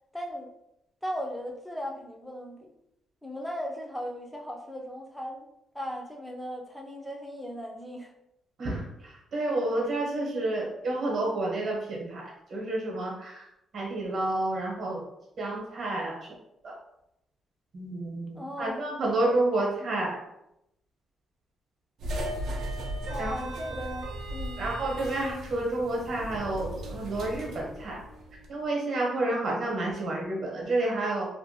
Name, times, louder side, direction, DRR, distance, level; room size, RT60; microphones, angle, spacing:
voice 1, 0.1-0.5 1.0-2.7 3.2-5.5 5.7-8.1 18.4-18.8 19.3-19.4 19.8-19.9 23.1-24.7, equal, ahead, 1 dB, 0.4 m, -37 dB
voice 2, 8.6-12.2 12.5-13.4 13.7-15.0 15.4-16.1 16.6-16.7 17.7-20.2 23.2-23.3 24.6-28.0 28.5-31.3, right 2 dB, 50° right, -2 dB, 0.9 m, -30 dB
sound 1, 22.0-28.5, right 1 dB, 70° right, 0.4 m, -36 dB
2.5 x 2.2 x 2.7 m, 0.82 s
cardioid pair, 130°, 0 cm